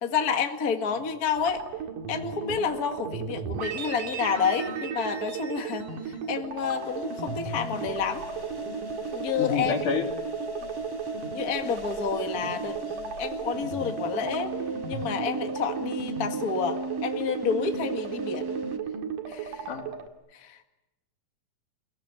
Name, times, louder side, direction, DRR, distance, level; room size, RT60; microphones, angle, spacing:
voice 1, 0.0-1.6 2.1-8.2 9.1-9.7 11.3-14.5 14.9-18.5 19.3-19.7 20.3-20.7, left 6 dB, 35° left, 5 dB, 1.9 m, -29 dB
sound 1, 1.4-20.1, right 6 dB, 85° right, 3.5 m, -35 dB
sound 2, 6.6-18.8, right 1 dB, 20° right, 0.6 m, -37 dB
voice 2, 9.4-10.1 10.6-10.8 19.7-20.0, left 6 dB, 75° left, 0 dB, 4.8 m, -29 dB
29.0 x 17.5 x 9.8 m, 0.97 s
omnidirectional pair, 3.7 m